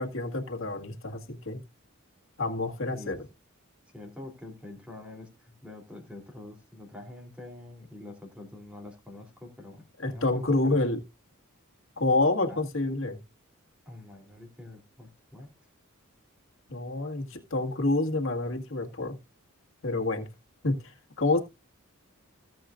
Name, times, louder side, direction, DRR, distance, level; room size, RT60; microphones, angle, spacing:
voice 1, 0.0-1.6 2.4-3.2 10.0-11.0 12.0-13.2 16.7-19.2 19.8-20.3 20.6-21.4, left 2 dB, 65° left, 4 dB, 1.9 m, -28 dB
voice 2, 3.9-10.8 12.5-12.6 13.8-15.5, left 2 dB, 5° right, 2 dB, 3.2 m, -45 dB
17.5 x 7.8 x 2.5 m, 0.25 s
head